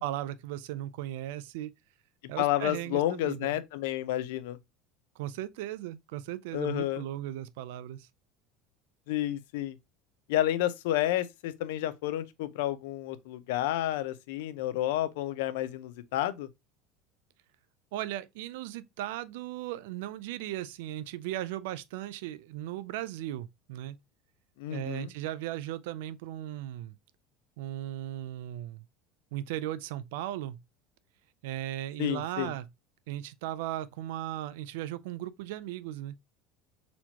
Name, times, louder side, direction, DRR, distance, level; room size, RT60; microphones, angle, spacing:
voice 1, 0.0-1.7 2.3-3.6 5.2-8.1 17.9-24.0 24.7-26.9 27.6-28.8 29.3-30.6 31.4-32.7 33.1-36.1, right 13 dB, 75° right, 0.4 m, -37 dB
voice 2, 2.4-4.6 6.5-7.0 9.1-9.8 10.3-16.5 24.6-25.1 32.0-32.5, left 14 dB, 80° left, 0.5 m, -30 dB
4.1 x 2.9 x 2.8 m
cardioid pair, 180°, 0 cm